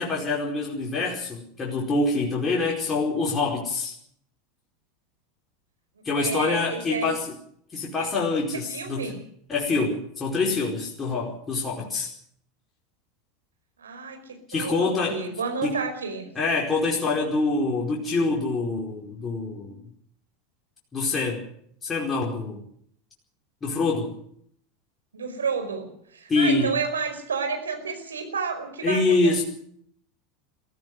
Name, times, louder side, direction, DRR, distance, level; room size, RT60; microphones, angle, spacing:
voice 1, 0.0-3.9 6.0-7.3 7.7-9.1 9.5-12.1 14.5-15.2 15.6-15.7 16.4-19.8 20.9-21.4 21.8-22.6 23.6-24.1 26.3-26.7 28.8-29.4, left 3 dB, 20° left, -2 dB, 4.8 m, -25 dB
voice 2, 6.0-7.1 8.5-9.2 13.8-16.3 25.1-29.4, right 5 dB, 75° right, 5 dB, 5.0 m, -31 dB
23.0 x 15.0 x 8.0 m, 0.66 s
figure-of-eight pair, 80°, 0 cm